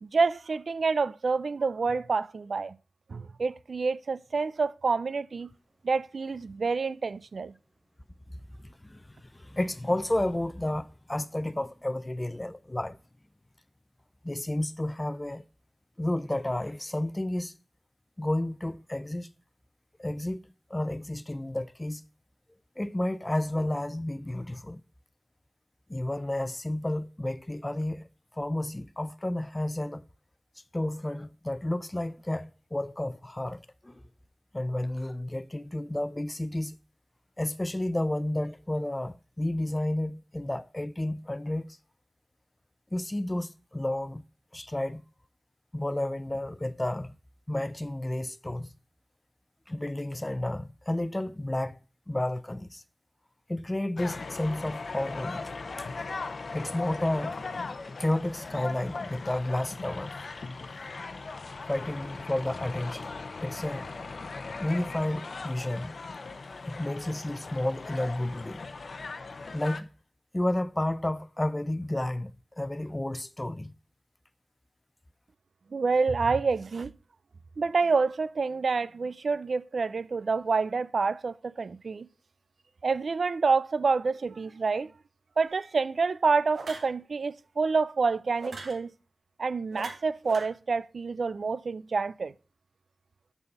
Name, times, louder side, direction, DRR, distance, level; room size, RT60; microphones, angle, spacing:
voice 1, 0.0-2.8 3.1-5.5 5.8-7.5 75.7-76.9 77.6-82.1 82.8-84.9 85.4-88.9 89.4-92.3, right 4 dB, 70° right, 0.4 m, -28 dB
voice 2, 8.3-13.0 14.2-15.4 16.0-17.5 18.2-19.3 20.0-22.0 22.8-24.8 25.9-28.1 28.3-30.0 30.7-34.0 34.5-36.8 37.4-41.8 42.9-44.2 44.5-45.0 45.7-47.1 47.5-48.7 49.7-51.8 52.1-52.8 53.5-55.5 55.8-55.9 56.5-57.4 58.0-60.1 61.7-63.1 63.4-63.9 64.6-66.0 66.7-68.6 69.5-69.9 70.3-73.7, left 1 dB, 20° left, 0.6 m, -31 dB
sound 1, 54.0-69.8, left 3 dB, 65° left, 0.8 m, -39 dB
sound 2, 85.5-85.7 86.5-86.9 88.4-88.8 89.7-90.5, right 3 dB, 90° right, 1.8 m, -41 dB
6.9 x 6.9 x 5.2 m
wide cardioid pair, 80°, 0 cm